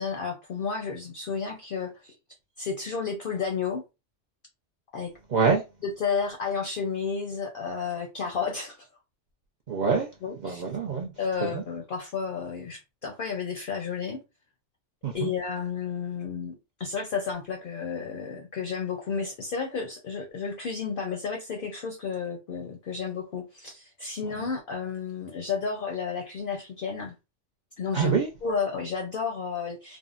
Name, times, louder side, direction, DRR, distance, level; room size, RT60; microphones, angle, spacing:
voice 1, 0.0-2.1 2.6-3.8 4.9-5.1 5.8-8.9 10.2-10.6 11.2-14.2 15.1-16.5 16.8-27.1 27.8-28.1 28.4-30.0, left 6 dB, 60° left, 0.6 m, -32 dB
voice 2, 5.3-5.6 9.7-10.1 10.4-11.1 11.4-11.6 15.0-15.3 27.9-28.3, right 5 dB, 60° right, 0.4 m, -25 dB
3.5 x 2.0 x 2.4 m
omnidirectional pair, 1.3 m